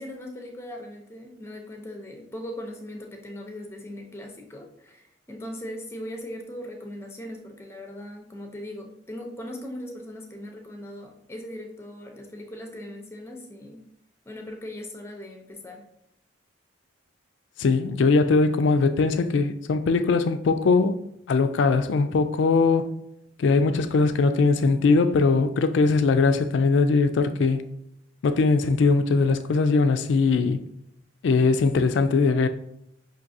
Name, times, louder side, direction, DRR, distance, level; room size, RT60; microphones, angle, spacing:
voice 1, 0.0-13.8 14.3-15.9, left 1 dB, 15° left, 0.5 m, -39 dB
voice 2, 17.6-21.0 21.3-23.0 23.4-27.6 28.2-30.6 31.2-32.5, left 4 dB, 65° left, 0.3 m, -21 dB
5.9 x 2.7 x 2.6 m
head